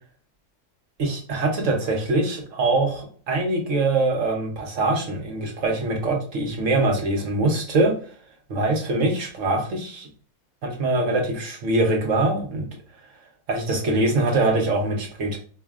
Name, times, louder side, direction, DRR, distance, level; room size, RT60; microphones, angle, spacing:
voice 1, 1.0-7.9 8.5-10.1 10.6-12.7 13.5-15.4, right 2 dB, 60° right, 2 dB, 1.1 m, -23 dB
4.7 x 2.4 x 2.3 m, 0.43 s
omnidirectional pair, 1.6 m